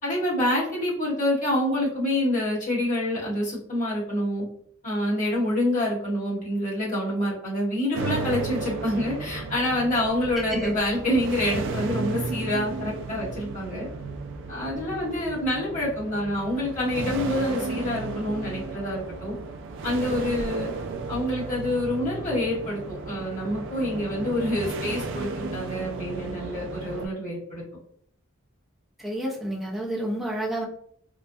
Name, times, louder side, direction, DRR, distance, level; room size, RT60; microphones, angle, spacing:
voice 1, 0.0-4.4 4.8-13.9 14.5-19.3 19.8-20.7 21.1-27.6, left 1 dB, 35° left, -6 dB, 1.3 m, -27 dB
sound 1, 7.9-27.1, right 3 dB, 60° right, 0.3 m, -34 dB
voice 2, 29.0-30.7, right 1 dB, ahead, -4 dB, 0.6 m, -29 dB
3.1 x 2.2 x 2.6 m, 0.63 s
head